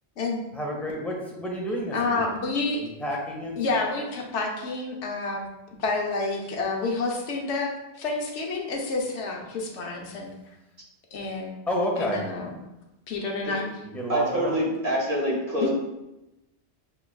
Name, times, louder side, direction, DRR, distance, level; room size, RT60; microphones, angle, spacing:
voice 1, 0.5-2.2 2.8-3.6 11.7-12.2 13.8-14.7, equal, ahead, -2 dB, 0.4 m, -30 dB
voice 2, 1.9-2.8 3.6-5.4 5.8-10.3 11.1-11.5 12.0-12.6 13.1-13.7 15.6-15.7, left 3 dB, 90° left, 1 dB, 1.0 m, -29 dB
voice 3, 14.1-15.7, equal, 50° right, -5 dB, 1.3 m, -25 dB
6.1 x 2.3 x 2.2 m, 0.95 s
omnidirectional pair, 1.2 m